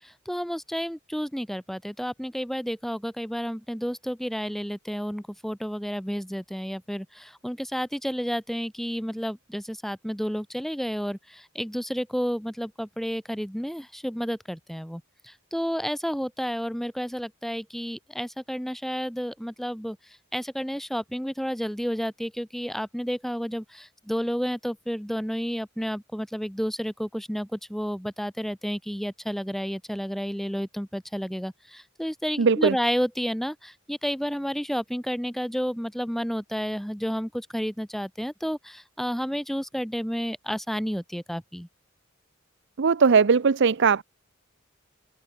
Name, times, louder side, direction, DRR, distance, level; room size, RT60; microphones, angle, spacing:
voice 1, 0.0-20.0 20.3-41.7, equal, ahead, 5.1 m, -31 dB
voice 2, 32.4-32.8 42.8-44.0, right 5 dB, 60° right, 0.6 m, -19 dB
head